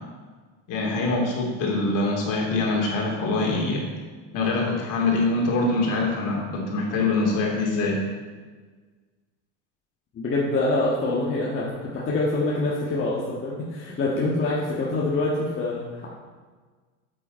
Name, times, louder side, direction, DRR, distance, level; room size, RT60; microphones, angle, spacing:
voice 1, 0.7-3.8 4.3-8.0, left 3 dB, 50° left, -2 dB, 2.9 m, -24 dB
voice 2, 10.1-16.1, left 2 dB, 30° left, -5 dB, 1.5 m, -25 dB
8.2 x 7.9 x 4.2 m, 1.4 s
supercardioid pair, 120°, 39 cm